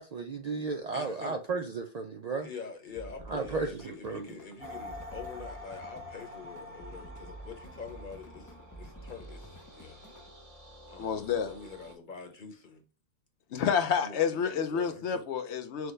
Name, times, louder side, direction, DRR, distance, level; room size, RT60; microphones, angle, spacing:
voice 1, 0.0-2.5 3.3-4.3, right 4 dB, 55° right, 0.4 m, -34 dB
voice 2, 0.9-1.4 2.4-10.1 10.9-12.9 14.0-15.2, left 5 dB, 50° left, 1.1 m, -45 dB
sound 1, 3.0-10.3, equal, 25° left, 0.4 m, -50 dB
sound 2, 4.6-11.9, left 1 dB, 35° right, 1.0 m, -47 dB
voice 3, 11.0-11.5 13.5-15.9, left 7 dB, 85° left, 1.0 m, -29 dB
6.2 x 2.2 x 3.2 m
omnidirectional pair, 1.1 m